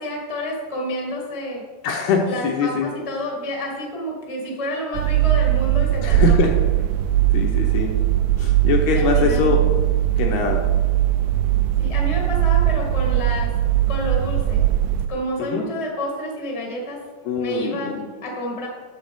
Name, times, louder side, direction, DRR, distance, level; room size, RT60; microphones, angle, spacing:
voice 1, 0.0-1.6 2.3-6.4 8.9-9.6 11.8-13.5 13.9-14.6 15.1-17.0 17.4-18.0 18.2-18.7, equal, 35° left, -2 dB, 0.5 m, -29 dB
voice 2, 1.8-2.9 6.0-6.6 7.3-7.9 8.4-9.7 10.2-10.6 15.4-15.7 17.3-18.1, left 4 dB, 75° left, 1 dB, 2.5 m, -22 dB
sound 1, 4.9-15.1, right 12 dB, 85° right, 2.8 m, -20 dB
11.5 x 7.9 x 3.6 m, 1.4 s
omnidirectional pair, 5.3 m